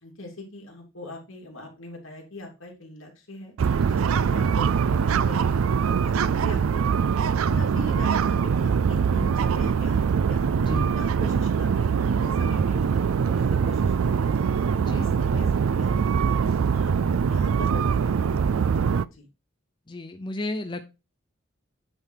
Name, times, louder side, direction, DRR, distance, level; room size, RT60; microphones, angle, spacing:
voice 1, 0.0-10.5 10.9-14.4 14.9-16.9 17.3-18.8 19.0-19.3, left 1 dB, 80° left, 1 dB, 2.7 m, -42 dB
sound 1, 3.6-19.1, right 6 dB, 90° right, 0.4 m, -23 dB
voice 2, 19.9-20.8, left 1 dB, 25° left, 7 dB, 0.5 m, -33 dB
8.9 x 3.9 x 4.5 m, 0.28 s
head